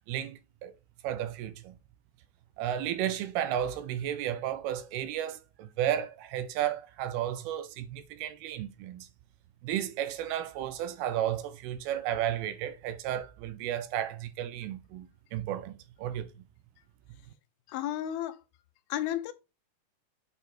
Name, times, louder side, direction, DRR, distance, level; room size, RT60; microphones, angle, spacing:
voice 1, 0.1-0.7 1.0-1.8 2.6-9.1 9.6-16.3, right 11 dB, 80° right, 2.7 m, -33 dB
voice 2, 17.7-18.4 18.9-19.3, left 12 dB, 80° left, 2.4 m, -32 dB
8.2 x 4.2 x 4.3 m
omnidirectional pair, 4.5 m